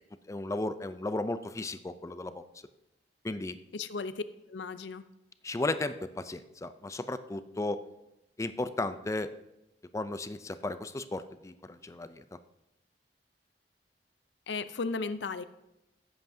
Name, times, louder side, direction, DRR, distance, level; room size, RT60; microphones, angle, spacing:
voice 1, 0.3-2.4 3.2-3.6 5.4-7.8 8.4-9.3 9.9-12.2, left 2 dB, 15° left, 11 dB, 0.4 m, -34 dB
voice 2, 3.7-4.2 4.5-5.0 14.5-15.4, left 4 dB, 85° left, 13 dB, 0.6 m, -35 dB
15.5 x 7.9 x 2.7 m, 0.89 s
head